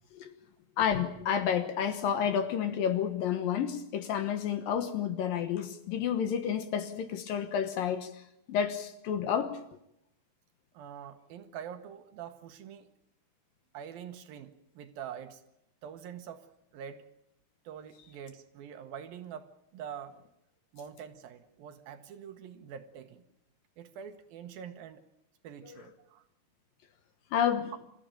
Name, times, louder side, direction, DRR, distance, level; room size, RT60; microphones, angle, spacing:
voice 1, 0.8-8.1 8.5-9.6 27.3-27.7, left 8 dB, 65° left, 2.6 m, -30 dB
voice 2, 10.7-12.9 13.7-15.4 15.8-16.5 16.7-17.0 17.6-20.1 20.7-23.2 23.8-25.0 25.4-26.2, right 8 dB, 70° right, 2.6 m, -45 dB
27.0 x 14.0 x 8.9 m
omnidirectional pair, 4.8 m